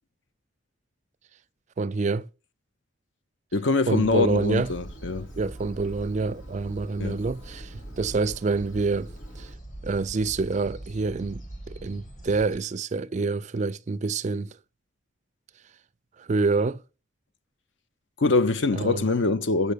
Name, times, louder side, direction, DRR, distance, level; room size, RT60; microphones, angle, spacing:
voice 1, 1.8-2.3 3.9-4.7 5.3-9.5 9.8-14.6 16.2-16.8 18.7-19.1, right 3 dB, 35° right, 0.4 m, -27 dB
voice 2, 3.5-5.3 7.0-7.2 18.2-19.7, left 3 dB, 65° left, 0.6 m, -24 dB
sound 1, 3.9-12.6, right 1 dB, 40° left, 1.9 m, -42 dB
Engine, 4.4-9.6, right 1 dB, 90° left, 3.1 m, -52 dB
6.7 x 5.4 x 6.7 m
head